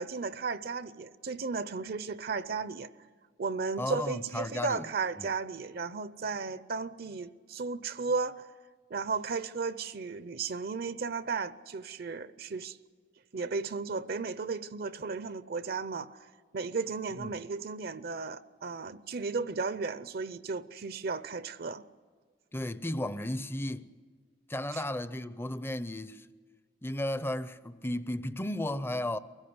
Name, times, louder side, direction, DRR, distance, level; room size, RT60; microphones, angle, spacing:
voice 1, 0.0-2.9 3.4-8.5 8.9-12.8 13.3-16.3 16.5-21.8 24.7-24.8, right 4 dB, 60° right, 0.6 m, -34 dB
voice 2, 3.8-4.9 5.2-5.3 17.2-17.3 22.5-23.9 24.5-26.3 26.8-29.2, left 1 dB, 15° left, 0.6 m, -34 dB
23.5 x 16.5 x 9.5 m
head